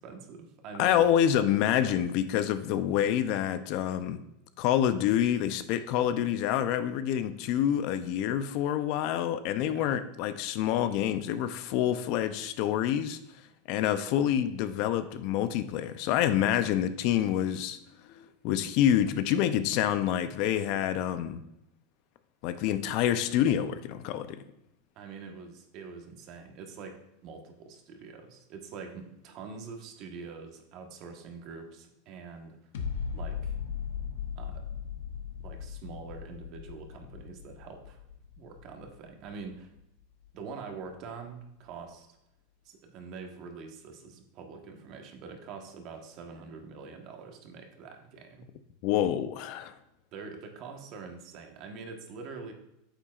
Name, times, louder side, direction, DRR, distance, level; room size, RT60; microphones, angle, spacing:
voice 1, 0.0-1.1 1.9-2.0 9.6-10.0 24.9-32.6 33.1-33.6 34.3-34.6 35.4-38.0 38.4-39.7 40.3-42.1 42.6-48.5 50.1-52.5, right 5 dB, 45° right, 4 dB, 1.2 m, -44 dB
voice 2, 0.8-4.2 4.6-13.2 13.7-17.8 18.2-21.4 22.4-24.4 48.8-49.7, left 10 dB, 50° left, 12 dB, 0.5 m, -27 dB
sound 1, 32.7-39.8 40.2-40.3, left 7 dB, 80° left, 1.0 m, -38 dB
8.9 x 7.1 x 2.4 m, 0.83 s
supercardioid pair, 140°, 0 cm